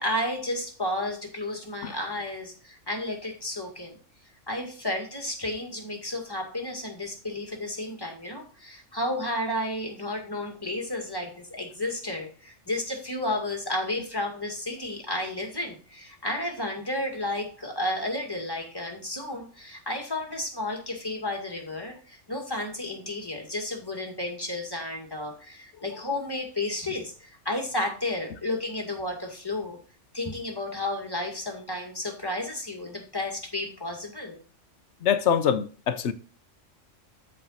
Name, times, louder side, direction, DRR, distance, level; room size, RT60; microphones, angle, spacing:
voice 1, 0.0-4.0 4.5-29.8 30.1-34.4, left 1 dB, 20° left, 2.3 m, -32 dB
voice 2, 35.0-36.1, left 8 dB, 70° left, 0.9 m, -24 dB
14.0 x 5.0 x 2.7 m
omnidirectional pair, 1.3 m